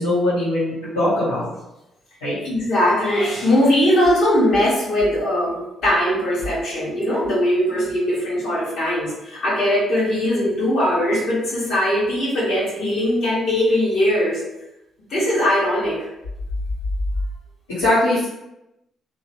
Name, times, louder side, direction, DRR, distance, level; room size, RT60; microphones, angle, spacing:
voice 1, 0.0-1.5 2.2-2.4 17.8-18.3, left 1 dB, 90° left, -13 dB, 0.7 m, -20 dB
voice 2, 2.4-14.4 15.1-16.1, left 1 dB, 65° left, -8 dB, 1.4 m, -20 dB
2.6 x 2.1 x 2.5 m, 0.91 s
hypercardioid pair, 45°, 0 cm